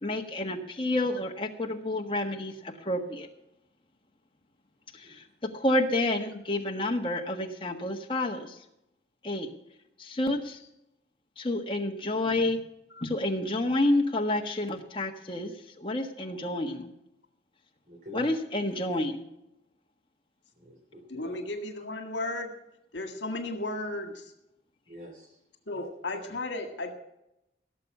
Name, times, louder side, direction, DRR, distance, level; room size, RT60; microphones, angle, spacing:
voice 1, 0.0-3.3 4.9-5.2 5.5-8.6 9.2-9.5 10.0-10.6 11.4-12.6 13.0-15.5 15.8-16.9 18.1-19.3, left 1 dB, 30° left, 2 dB, 1.4 m, -29 dB
voice 2, 17.9-18.3 20.6-21.4 24.9-25.3 25.7-25.9, equal, 45° right, -1 dB, 3.0 m, -46 dB
voice 3, 21.1-22.5 22.9-24.3 25.7-26.9, left 2 dB, 75° left, 5 dB, 1.8 m, -34 dB
17.0 x 7.0 x 7.0 m, 0.83 s
head